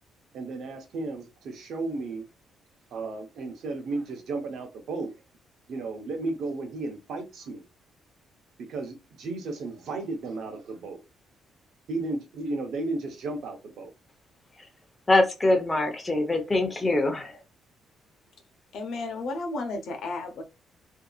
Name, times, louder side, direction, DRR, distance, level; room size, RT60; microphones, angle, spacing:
voice 1, 0.3-2.3 2.9-5.1 5.7-7.6 8.6-11.0 11.9-13.9, right 3 dB, 70° right, 0.7 m, -34 dB
voice 2, 15.1-17.4, left 2 dB, 25° left, 0.8 m, -23 dB
voice 3, 18.7-20.4, left 3 dB, 70° left, 0.8 m, -33 dB
2.7 x 2.4 x 2.3 m
cardioid pair, 90°, 0 cm